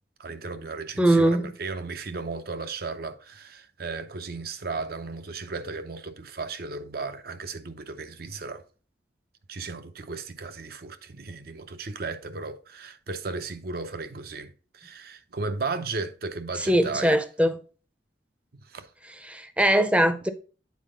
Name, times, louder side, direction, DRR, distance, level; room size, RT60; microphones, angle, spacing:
voice 1, 0.2-8.6 9.5-17.2 18.7-18.9, right 4 dB, 60° right, 0.7 m, -35 dB
voice 2, 1.0-1.5 16.6-17.6 19.2-20.3, right 1 dB, 5° right, 0.6 m, -21 dB
8.4 x 4.4 x 3.7 m
head